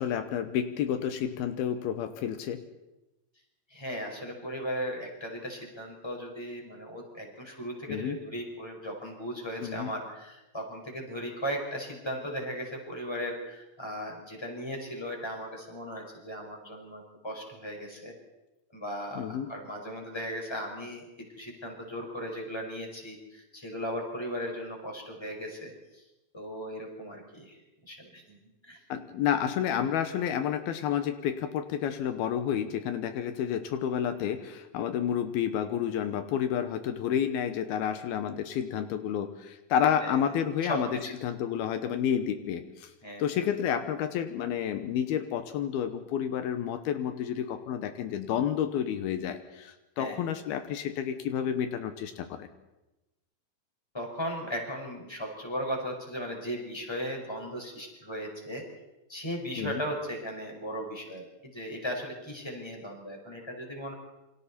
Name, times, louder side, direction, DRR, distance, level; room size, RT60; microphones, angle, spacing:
voice 1, 0.0-2.6 7.9-8.2 9.6-9.9 19.2-19.5 28.9-42.9 43.2-52.5 59.6-59.8, left 9 dB, 80° left, 8 dB, 3.0 m, -30 dB
voice 2, 3.7-18.1 18.7-21.0 21.3-26.0 26.3-27.6 27.9-28.4 28.6-28.8 40.0-40.2 40.6-41.2 43.0-43.5 50.0-50.2 53.9-58.6 59.1-63.9, equal, 5° left, 1 dB, 5.1 m, -37 dB
28.0 x 25.5 x 4.3 m, 0.99 s
omnidirectional pair, 4.4 m